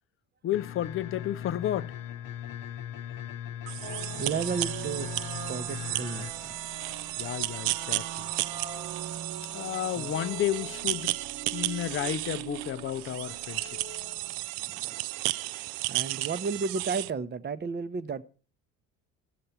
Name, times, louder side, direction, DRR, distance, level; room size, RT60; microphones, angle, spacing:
voice 1, 0.4-1.9 7.2-8.3 9.5-11.2 11.5-13.8, left 12 dB, 30° left, 0.5 m, -32 dB
sound 1, 0.5-6.3, left 10 dB, 50° left, 0.8 m, -39 dB
sound 2, 3.7-17.1, right 18 dB, 55° right, 0.5 m, -34 dB
sound 3, 3.8-14.5, right 6 dB, 85° right, 1.9 m, -42 dB
voice 2, 4.2-5.2 5.5-6.6 10.0-10.1 14.5-15.0 15.9-18.2, right 5 dB, 25° right, 0.8 m, -33 dB
13.0 x 6.6 x 5.7 m
hypercardioid pair, 65°, 42 cm